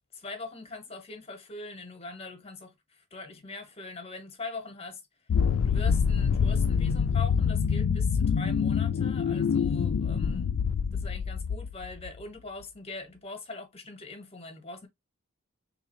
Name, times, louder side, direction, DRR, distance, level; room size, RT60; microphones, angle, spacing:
voice 1, 0.1-5.0 5.6-10.6 10.9-14.9, left 3 dB, 30° left, 0.9 m, -42 dB
sound 1, 5.3-12.1, left 6 dB, 65° left, 0.3 m, -26 dB
3.8 x 2.8 x 2.9 m
head